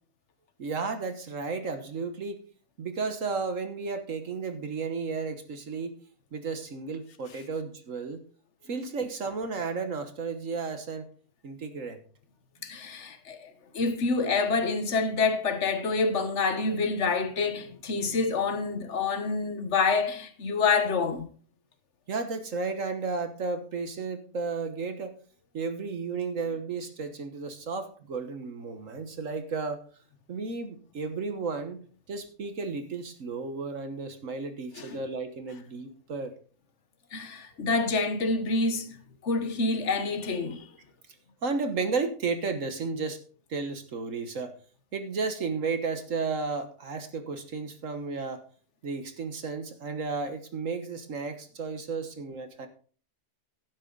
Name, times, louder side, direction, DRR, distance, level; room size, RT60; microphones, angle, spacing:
voice 1, 0.6-2.4 2.8-5.9 6.3-8.2 8.7-11.1 11.4-12.0 22.1-25.1 25.5-29.8 30.3-31.8 32.1-36.3 41.4-43.2 43.5-44.5 44.9-48.4 48.8-52.7, right 4 dB, 55° right, 1.5 m, -33 dB
voice 2, 12.6-21.3 34.8-35.0 37.1-40.7, left 4 dB, 50° left, 1.4 m, -27 dB
11.5 x 9.7 x 3.9 m
omnidirectional pair, 1.6 m